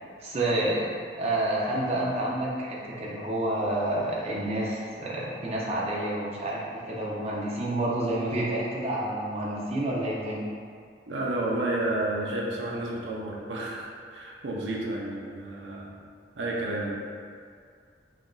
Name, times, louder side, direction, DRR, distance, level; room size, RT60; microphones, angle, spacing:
voice 1, 0.2-0.9 1.2-10.5, right 1 dB, 35° right, -5 dB, 0.5 m, -29 dB
voice 2, 11.0-16.0 16.4-16.9, right 2 dB, 90° right, -3 dB, 0.6 m, -31 dB
5.6 x 2.5 x 2.3 m, 2.2 s
head